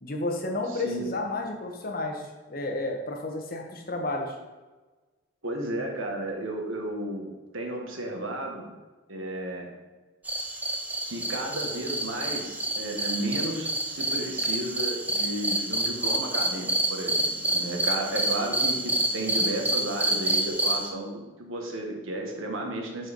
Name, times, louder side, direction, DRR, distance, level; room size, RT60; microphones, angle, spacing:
voice 1, 0.0-4.3, left 2 dB, 45° left, 2 dB, 1.1 m, -31 dB
voice 2, 0.7-1.1 5.4-8.7 9.1-9.7 11.0-23.1, right 1 dB, 75° right, 1 dB, 1.6 m, -33 dB
sound 1, 10.3-20.9, right 1 dB, 10° right, 0.6 m, -28 dB
7.9 x 4.7 x 5.3 m, 1.2 s
head